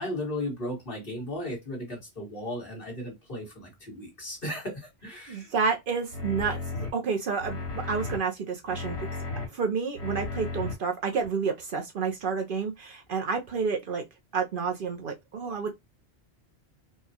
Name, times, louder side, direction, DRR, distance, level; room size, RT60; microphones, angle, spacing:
voice 1, 0.0-5.5, left 1 dB, 55° left, 1.9 m, -35 dB
voice 2, 5.3-9.1 9.5-14.0 14.3-15.7, right 5 dB, 60° right, 0.7 m, -30 dB
sound 1, 6.1-6.9 7.4-8.2 8.7-9.5 10.0-10.7 11.2-11.3, left 3 dB, 75° left, 2.0 m, -34 dB
4.6 x 2.2 x 2.8 m
omnidirectional pair, 1.1 m